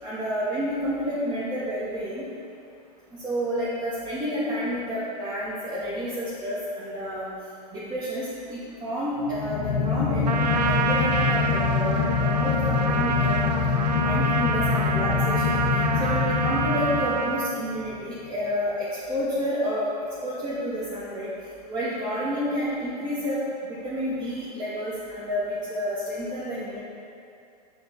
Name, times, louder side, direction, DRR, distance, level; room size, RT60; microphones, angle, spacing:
voice 1, 0.0-2.3 3.1-7.3 7.7-13.5 13.9-15.6 16.0-19.9 20.2-21.3 21.7-26.8, equal, 20° right, -10 dB, 1.0 m, -30 dB
sound 1, 9.2-17.6, left 6 dB, 60° left, 0.8 m, -25 dB
Trumpet, 10.2-17.6, right 5 dB, 75° right, 0.4 m, -27 dB
7.9 x 3.4 x 3.8 m, 2.5 s
figure-of-eight pair, 95°, 21 cm